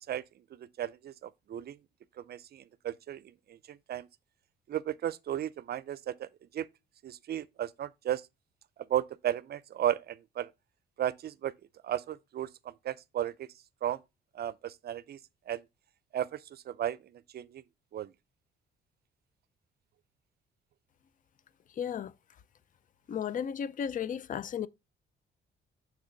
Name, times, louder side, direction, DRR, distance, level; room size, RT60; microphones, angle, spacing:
voice 1, 0.8-1.1 1.5-1.8 2.2-3.2 3.5-4.1 4.7-6.3 6.5-6.7 7.0-8.2 8.9-10.5 11.0-11.5 11.8-12.5 12.8-13.5 13.8-14.0 14.3-15.2 15.5-15.6 16.1-17.0 17.3-17.6 17.9-18.1, right 11 dB, 55° right, 0.5 m, -34 dB
voice 2, 21.8-22.1 23.1-24.7, left 8 dB, 40° left, 0.5 m, -34 dB
6.4 x 3.4 x 5.7 m
cardioid pair, 90°, 20 cm